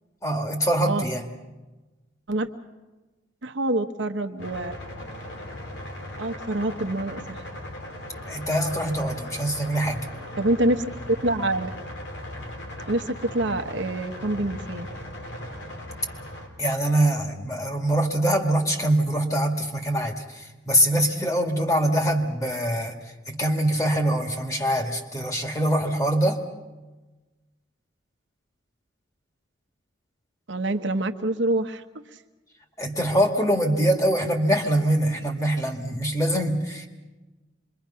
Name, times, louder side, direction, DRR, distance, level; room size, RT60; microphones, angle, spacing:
voice 1, 0.2-1.2 8.3-10.1 16.6-22.9 23.3-26.4 32.8-36.9, right 1 dB, 15° left, 3 dB, 2.0 m, -24 dB
voice 2, 3.4-4.7 6.2-7.4 10.4-10.8 11.2-11.7 12.9-14.9 30.5-31.8, right 1 dB, 75° right, 6 dB, 1.1 m, -26 dB
sound 1, 4.4-16.5, left 1 dB, 75° left, 3.5 m, -38 dB
26.5 x 22.5 x 5.7 m, 1.2 s
head